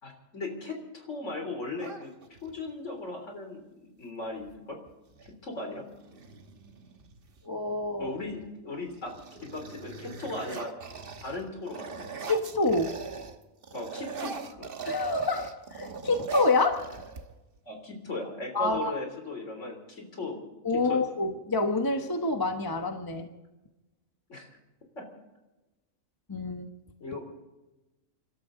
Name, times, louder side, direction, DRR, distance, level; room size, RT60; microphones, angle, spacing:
voice 1, 0.0-2.1 2.4-4.8 5.2-5.9 8.0-9.1 9.4-10.7 11.2-12.1 13.7-14.7 17.7-20.4 20.9-21.0 24.3-24.5 25.0-25.1 27.0-27.3, left 2 dB, 60° left, 3 dB, 3.8 m, -37 dB
sound 1, 1.8-2.7 4.4-4.5 4.9-5.4 5.9-7.4 8.1-8.5 8.8-13.4 13.6-17.6, right 5 dB, 45° right, 1.3 m, -41 dB
voice 2, 7.4-8.1 12.3-13.0 14.8-16.8 18.5-18.9 20.6-23.3 26.3-26.7, left 2 dB, 15° left, 5 dB, 1.1 m, -27 dB
29.5 x 12.5 x 3.9 m, 1.0 s
omnidirectional pair, 1.4 m